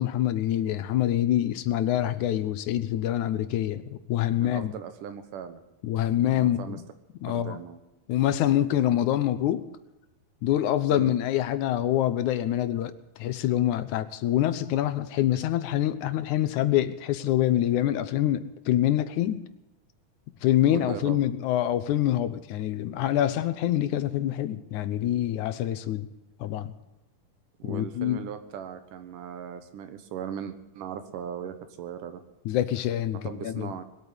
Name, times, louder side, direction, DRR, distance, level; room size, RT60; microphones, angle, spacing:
voice 1, 0.0-4.7 5.8-6.8 7.2-7.6 8.1-9.6 10.4-12.9 13.2-19.4 20.4-26.1 26.4-26.7 27.6-28.2 32.5-33.7, left 12 dB, 75° left, 12 dB, 2.2 m, -25 dB
voice 2, 4.4-5.6 6.2-6.8 7.3-7.8 10.9-11.2 20.7-21.3 27.6-32.2 33.1-33.8, right 8 dB, 80° right, 10 dB, 2.9 m, -38 dB
20.5 x 8.8 x 8.1 m, 0.97 s
omnidirectional pair, 3.7 m